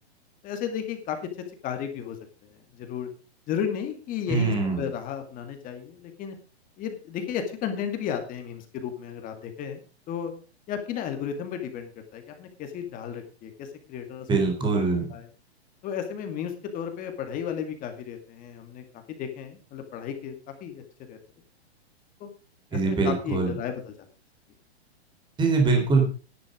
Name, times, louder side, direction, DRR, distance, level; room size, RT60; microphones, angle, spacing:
voice 1, 0.4-1.2 1.6-2.2 2.4-3.1 3.5-6.4 6.8-9.8 10.1-10.3 10.7-14.3 14.6-14.7 15.1-15.3 15.8-20.3 20.6-21.2 22.2-22.3 22.8-23.9, left 8 dB, 25° left, 6 dB, 2.2 m, -34 dB
voice 2, 4.3-4.9 14.3-15.1 22.7-23.5 25.4-26.0, right 4 dB, 15° right, 3 dB, 3.6 m, -23 dB
11.5 x 10.5 x 5.0 m, 0.35 s
hypercardioid pair, 145°, 33 cm